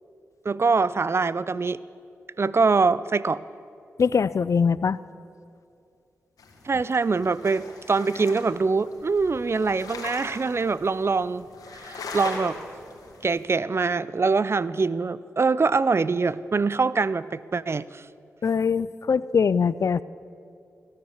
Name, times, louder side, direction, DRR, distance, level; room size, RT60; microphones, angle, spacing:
voice 1, 0.5-1.8 2.4-3.4 6.6-11.5 11.8-12.6 13.2-18.0, right 4 dB, 45° right, 18 dB, 0.5 m, -24 dB
voice 2, 4.0-5.0 18.4-20.0, left 6 dB, 60° left, 18 dB, 0.4 m, -22 dB
sound 1, 6.4-13.4, left 3 dB, 80° left, 2.0 m, -40 dB
16.5 x 10.0 x 7.3 m, 2.5 s
supercardioid pair, 40°, 6 cm